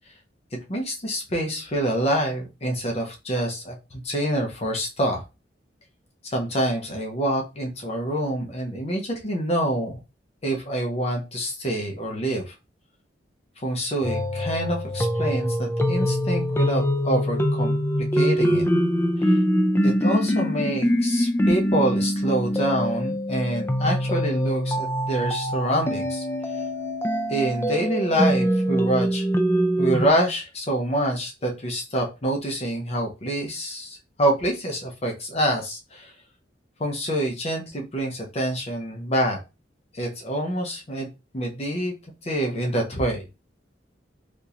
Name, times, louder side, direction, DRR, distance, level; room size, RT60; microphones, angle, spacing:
voice 1, 0.7-5.2 6.2-10.0 10.4-12.5 13.6-18.7 19.2-19.4 19.8-26.6 27.3-29.3 29.8-36.1 36.8-39.4 39.9-41.1 41.3-41.9 42.2-43.2, right 1 dB, 35° left, 1 dB, 0.7 m, -26 dB
sound 1, 14.0-30.1, equal, 15° left, 0.4 m, -23 dB
3.5 x 2.8 x 2.5 m, 0.27 s
head